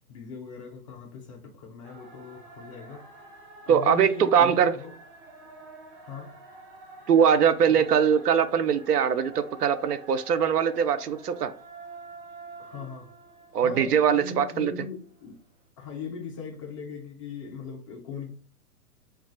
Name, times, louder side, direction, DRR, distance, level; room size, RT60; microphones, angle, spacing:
voice 1, 0.1-3.1 3.7-4.9 6.0-6.3 7.7-7.9 12.6-13.1 13.6-15.3 15.8-18.3, left 5 dB, 25° left, 0.4 m, -39 dB
sound 1, 1.8-14.6, right 3 dB, 35° right, 0.7 m, -48 dB
voice 2, 3.7-4.7 7.1-11.5 13.5-14.7, right 7 dB, 90° right, 0.5 m, -22 dB
2.3 x 2.3 x 3.8 m
hypercardioid pair, 125°, 46 cm